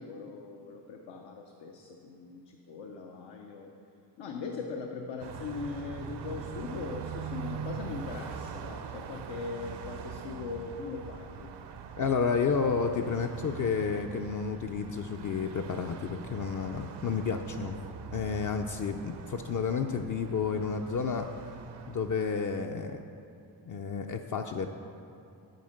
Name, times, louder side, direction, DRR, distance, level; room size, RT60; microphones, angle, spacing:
voice 1, 0.0-3.7 4.2-11.5, left 4 dB, 85° left, 2 dB, 0.7 m, -40 dB
Car passing by, 5.2-22.4, right 7 dB, 70° right, 0.6 m, -43 dB
voice 2, 12.0-17.8 18.1-21.3 21.9-23.0 23.7-24.7, left 5 dB, 45° left, 4 dB, 0.4 m, -31 dB
9.2 x 4.3 x 6.4 m, 2.7 s
cardioid pair, 85°, 43 cm